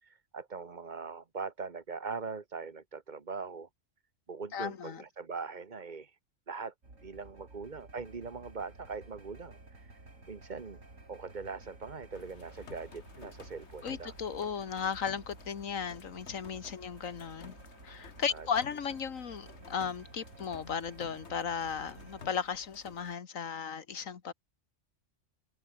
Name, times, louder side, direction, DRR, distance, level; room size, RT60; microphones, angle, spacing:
voice 1, 0.0-3.7 4.3-6.2 6.5-6.7 7.0-10.0 10.3-10.8 11.1-14.1 18.3-18.5, right 4 dB, 35° right, 1.5 m, -41 dB
voice 2, 4.5-5.0 13.8-17.6 17.8-24.3, left 7 dB, 80° left, 1.8 m, -36 dB
sound 1, 6.8-22.3, right 2 dB, 75° right, 5.1 m, -53 dB
sound 2, 12.1-23.1, left 5 dB, 60° left, 1.8 m, -54 dB
open air
omnidirectional pair, 1.4 m